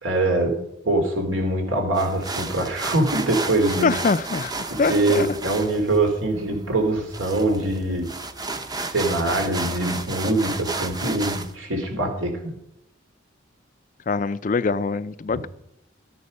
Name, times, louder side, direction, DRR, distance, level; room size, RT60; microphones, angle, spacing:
voice 1, 0.0-0.6 0.8-4.0 4.7-8.1 8.9-12.5 15.3-15.5, right 2 dB, 85° right, 3.2 m, -23 dB
sound 1, 1.9-11.5, right 3 dB, 20° right, 0.7 m, -32 dB
voice 2, 3.8-4.5 4.8-5.3 14.1-15.5, left 4 dB, 40° left, 0.4 m, -23 dB
13.5 x 9.6 x 5.4 m
head